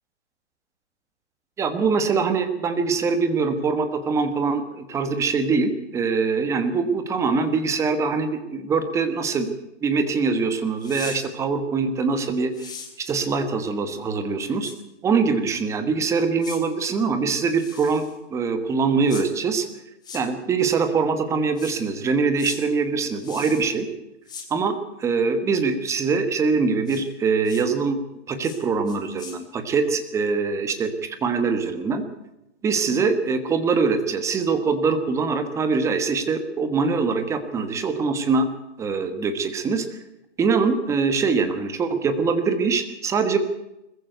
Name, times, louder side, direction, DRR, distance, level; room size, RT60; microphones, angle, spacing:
voice 1, 1.6-14.7 15.0-18.0 18.3-19.7 20.1-23.9 24.5-28.0 28.3-32.0 32.6-38.5 38.8-40.0 40.4-43.4, right 4 dB, 10° right, 9 dB, 1.2 m, -23 dB
sound 1, 10.8-11.2 12.5-12.9 14.6-14.7 16.4-16.6 17.5-18.1 19.1-19.2 20.0-20.2 21.6-21.8 22.4-22.6 23.2-23.7 24.3-24.5 26.9-27.0 27.4-27.6 28.4-28.6 28.9-29.3, left 6 dB, 10° left, 2.9 m, -39 dB
21.0 x 15.0 x 9.2 m, 0.93 s
hypercardioid pair, 160°, 35 cm